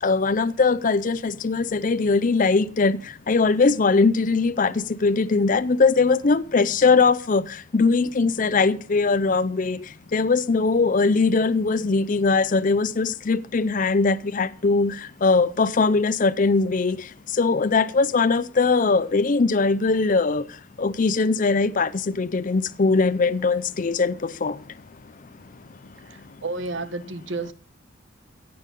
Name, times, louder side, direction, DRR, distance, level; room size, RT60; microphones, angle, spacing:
voice 1, 0.0-24.6, left 4 dB, 40° left, 0.5 m, -21 dB
voice 2, 26.1-27.5, right 3 dB, 65° right, 1.2 m, -31 dB
16.0 x 8.7 x 5.3 m
head